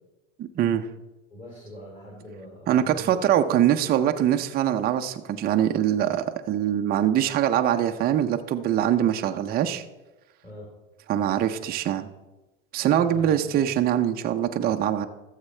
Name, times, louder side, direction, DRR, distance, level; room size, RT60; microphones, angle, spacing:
voice 1, 0.4-0.8 2.7-9.8 11.1-12.1 12.7-15.1, right 10 dB, 25° right, 6 dB, 0.5 m, -23 dB
voice 2, 1.3-3.1 10.4-10.7 13.0-13.8, equal, 20° left, -4 dB, 3.3 m, -43 dB
13.5 x 7.3 x 3.2 m, 1.1 s
supercardioid pair, 115°, 39 cm